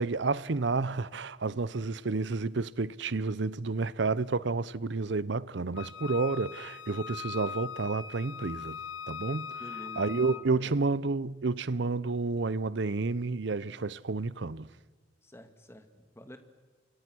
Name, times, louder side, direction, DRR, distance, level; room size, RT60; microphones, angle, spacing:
voice 1, 0.0-8.8 9.1-9.5 10.0-14.7, right 3 dB, 65° right, 0.7 m, -30 dB
Wind instrument woodwind instrument, 5.8-10.5, left 7 dB, 90° left, 0.9 m, -41 dB
voice 2, 9.6-11.0 15.2-16.4, equal, 15° left, 1.8 m, -49 dB
28.5 x 25.0 x 6.2 m
head